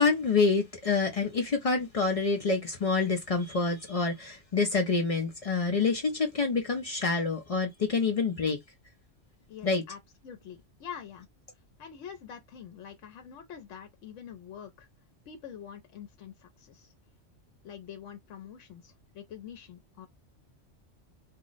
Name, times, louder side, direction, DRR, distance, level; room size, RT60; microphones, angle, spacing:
voice 1, 0.0-8.6 9.6-9.8, left 4 dB, 60° left, 0.3 m, -27 dB
voice 2, 9.5-11.3 11.8-14.9 15.3-16.9 17.6-20.1, left 8 dB, 85° left, 1.0 m, -45 dB
2.4 x 2.0 x 3.8 m
omnidirectional pair, 1.3 m